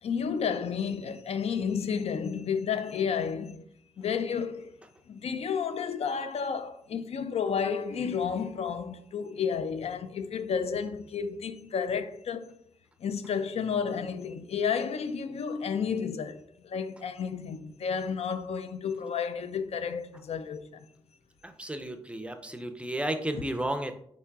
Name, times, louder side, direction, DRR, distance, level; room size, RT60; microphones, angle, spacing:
voice 1, 0.0-3.7 4.0-4.7 5.1-12.6 13.0-20.9, left 6 dB, 75° left, 0.4 m, -31 dB
voice 2, 21.4-24.0, right 1 dB, 10° right, 0.4 m, -33 dB
3.5 x 2.9 x 4.5 m
wide cardioid pair, 105°, 11 cm